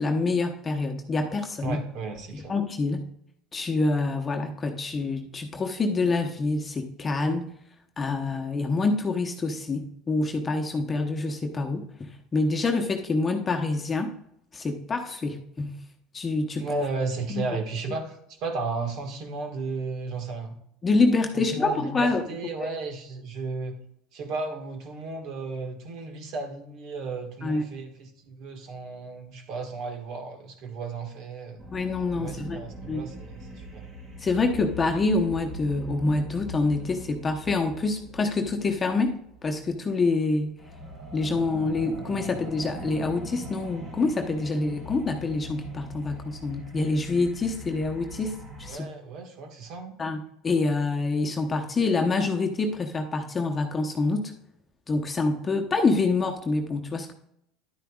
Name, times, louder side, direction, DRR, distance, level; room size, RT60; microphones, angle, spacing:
voice 1, 0.0-1.8 2.3-3.1 3.5-7.5 8.0-14.1 14.5-15.8 16.1-16.6 17.3-17.4 20.8-22.2 27.4-27.6 31.7-32.6 32.9-33.0 34.2-40.5 41.1-48.9 50.0-54.3 54.9-57.1, left 3 dB, 25° left, 4 dB, 0.9 m, -26 dB
voice 2, 1.6-2.6 16.6-20.6 21.3-23.7 24.1-31.6 32.2-33.9 48.6-50.0, right 3 dB, 60° right, 5 dB, 1.6 m, -34 dB
sound 1, 31.6-48.7, equal, 40° right, 3.7 m, -41 dB
10.5 x 9.0 x 2.4 m, 0.74 s
supercardioid pair, 95°, 0 cm